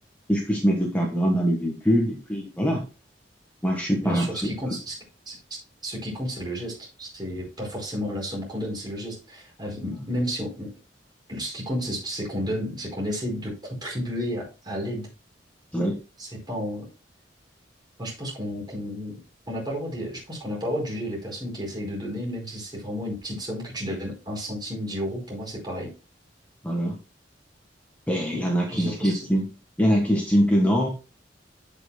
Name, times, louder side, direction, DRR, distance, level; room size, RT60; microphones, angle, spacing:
voice 1, 0.3-2.8 3.6-4.3 9.9-10.0 15.7-16.0 26.6-27.0 28.1-29.5 29.8-30.9, equal, 10° left, -1 dB, 1.5 m, -23 dB
voice 2, 4.0-5.0 5.3-5.4 5.8-10.7 11.3-15.1 16.2-16.8 18.0-19.2 19.5-25.9 28.7-29.2, equal, 25° right, -2 dB, 4.9 m, -32 dB
15.0 x 6.0 x 2.2 m, 0.31 s
head